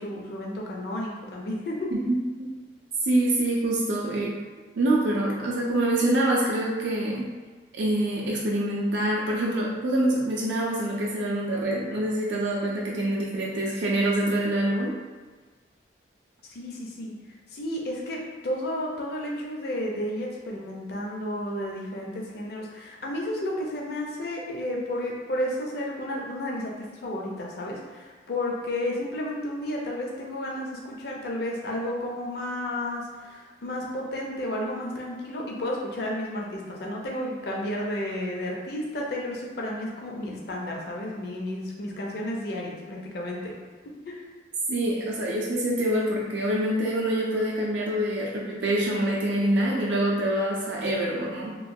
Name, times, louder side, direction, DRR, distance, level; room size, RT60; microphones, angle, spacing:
voice 1, 0.0-1.9 16.5-17.1 17.5-43.5 44.1-44.3, left 1 dB, 60° left, -2 dB, 0.5 m, -32 dB
voice 2, 1.9-2.5 3.0-4.3 4.8-7.3 7.7-14.9 44.7-51.6, right 1 dB, 70° right, -4 dB, 0.4 m, -25 dB
3.0 x 2.2 x 2.6 m, 1.4 s
head